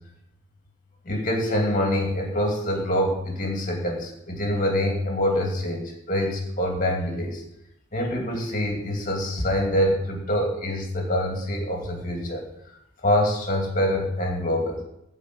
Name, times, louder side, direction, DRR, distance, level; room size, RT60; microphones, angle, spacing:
voice 1, 1.0-7.4 7.9-12.4 13.0-14.8, left 1 dB, 35° left, 1 dB, 2.4 m, -25 dB
12.0 x 5.0 x 8.7 m, 0.80 s
head